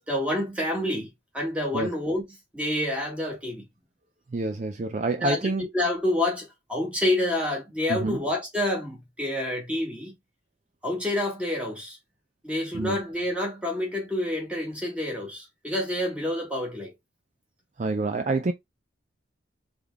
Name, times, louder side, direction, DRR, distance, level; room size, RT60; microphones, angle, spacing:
voice 1, 0.1-1.1 1.3-2.3 2.5-3.7 5.2-10.2 10.8-12.0 12.4-16.9, left 1 dB, 5° right, 1.7 m, -28 dB
voice 2, 4.3-5.7 7.9-8.2 12.7-13.0 17.8-18.5, right 3 dB, 40° right, 0.4 m, -27 dB
3.7 x 3.6 x 3.4 m
head